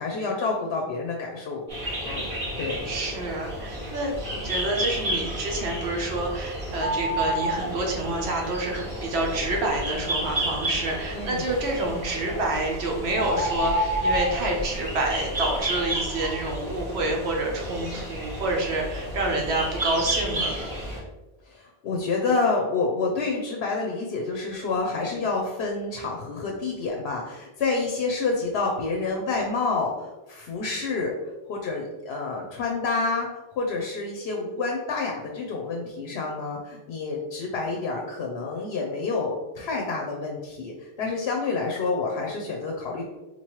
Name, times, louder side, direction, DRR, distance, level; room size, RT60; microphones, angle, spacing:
voice 1, 0.0-1.6 2.0-2.3 2.6-2.8 11.1-11.5 21.4-31.1 31.5-43.0, left 3 dB, 85° left, 0 dB, 0.9 m, -28 dB
sound 1, 1.7-21.0, right 1 dB, 55° right, 1.9 m, -32 dB
voice 2, 2.8-20.7, right 2 dB, 85° right, 0 dB, 1.0 m, -28 dB
sound 2, 6.8-7.7 12.3-12.4 13.1-14.4, equal, 20° right, 0.5 m, -26 dB
4.0 x 3.0 x 3.0 m, 1.1 s
omnidirectional pair, 1.1 m